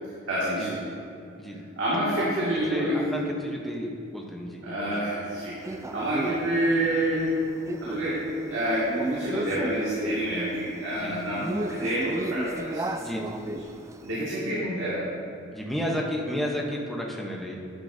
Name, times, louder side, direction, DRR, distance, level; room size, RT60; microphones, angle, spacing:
voice 1, 0.3-0.9 1.8-3.0 4.6-7.3 7.8-8.2 8.5-12.9 13.5-13.6 14.0-15.0, right 1 dB, 85° right, -9 dB, 2.1 m, -28 dB
voice 2, 2.7-5.0 10.9-11.3 13.0-13.4 15.5-17.6, equal, ahead, -1 dB, 0.9 m, -32 dB
Male speech man speaking, 5.6-14.2, right 1 dB, 15° right, 0.3 m, -35 dB
10.5 x 9.9 x 2.7 m, 2.6 s
head